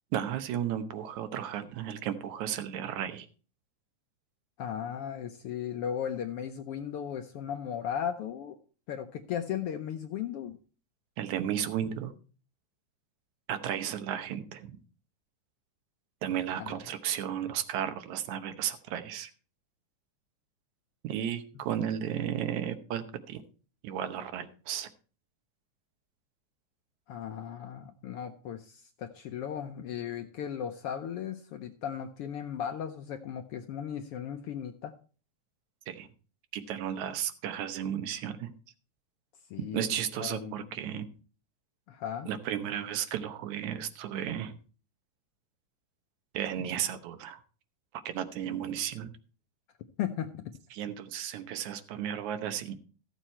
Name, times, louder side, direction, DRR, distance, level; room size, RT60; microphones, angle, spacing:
voice 1, 0.1-3.3 11.2-12.1 13.5-14.7 16.2-19.3 21.0-23.4 23.8-24.9 35.9-36.1 36.5-38.5 39.7-41.1 42.3-44.5 46.3-47.4 48.1-49.1 50.7-52.7, right 10 dB, 80° right, 9 dB, 2.4 m, -34 dB
voice 2, 4.6-8.6 8.9-10.6 16.6-16.7 27.1-34.9 39.5-39.8 40.2-40.7 41.9-42.3 50.0-50.5, left 9 dB, 70° left, 7 dB, 1.4 m, -36 dB
14.0 x 7.3 x 4.4 m, 0.37 s
omnidirectional pair, 3.3 m